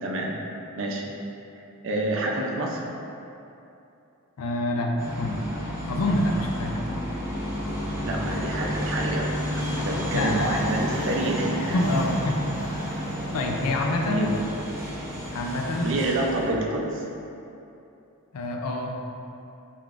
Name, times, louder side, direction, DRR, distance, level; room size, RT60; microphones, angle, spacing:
voice 1, 0.0-0.4 0.8-1.1 1.8-2.8 8.0-11.7 14.1-14.3 15.8-17.1, right 2 dB, 55° right, -1 dB, 0.5 m, -28 dB
voice 2, 4.4-5.4 5.9-7.0 9.7-10.6 11.7-12.4 13.3-14.3 15.3-15.9 18.3-19.0, left 1 dB, 85° left, 2 dB, 0.5 m, -27 dB
sound 1, 5.0-16.5, equal, 10° right, 0.7 m, -31 dB
4.5 x 3.8 x 2.4 m, 2.8 s
head